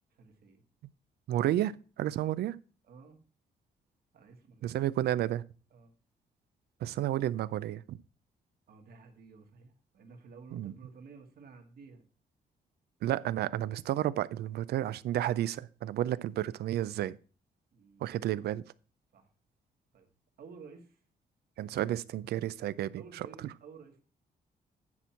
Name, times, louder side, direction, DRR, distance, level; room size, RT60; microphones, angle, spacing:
voice 1, 0.1-0.6 2.8-3.2 4.1-4.8 5.7-5.9 8.7-12.0 17.7-18.2 19.1-19.3 19.9-20.1 20.4-21.0 22.9-24.0, right 5 dB, 70° right, 1.8 m, -53 dB
voice 2, 1.3-2.6 4.6-5.4 6.8-8.0 10.5-10.7 13.0-17.2 18.0-18.6 21.6-23.3, right 13 dB, 90° right, 0.5 m, -31 dB
9.7 x 4.5 x 5.7 m
cardioid pair, 125°, 16 cm